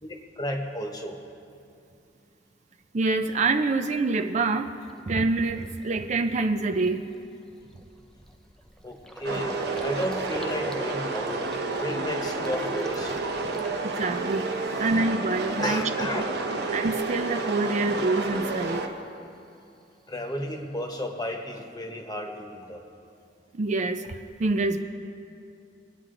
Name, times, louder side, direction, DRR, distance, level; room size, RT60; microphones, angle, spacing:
voice 1, 0.0-1.2 8.8-11.4 11.8-13.2 15.6-16.3 20.1-22.8, left 1 dB, 20° left, 3 dB, 1.1 m, -33 dB
voice 2, 2.9-4.7 5.1-7.1 13.8-15.8 16.1-16.2 16.7-18.9 23.5-24.8, right 3 dB, 40° right, 7 dB, 0.5 m, -26 dB
Gurgling, 4.9-5.0 5.5-5.7 6.1-6.3 6.5-14.6 14.9-15.6, equal, 5° left, 0.6 m, -42 dB
sound 1, 9.2-18.9, right 3 dB, 65° right, 1.0 m, -30 dB
21.5 x 9.0 x 3.8 m, 2.6 s
head